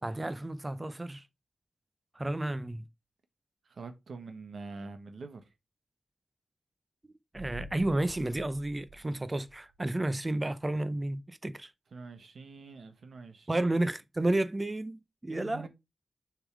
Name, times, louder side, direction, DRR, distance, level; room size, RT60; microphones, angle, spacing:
voice 1, 0.0-1.3 2.1-2.8 7.0-11.7 13.5-15.7, right 1 dB, 25° right, 0.6 m, -32 dB
voice 2, 3.6-5.5 11.9-13.7 15.3-15.7, right 4 dB, 75° right, 1.3 m, -45 dB
sound 1, 7.3-10.0 10.3-10.4, right 2 dB, 40° right, 1.6 m, -49 dB
6.9 x 3.7 x 4.7 m
wide cardioid pair, 80°, 0 cm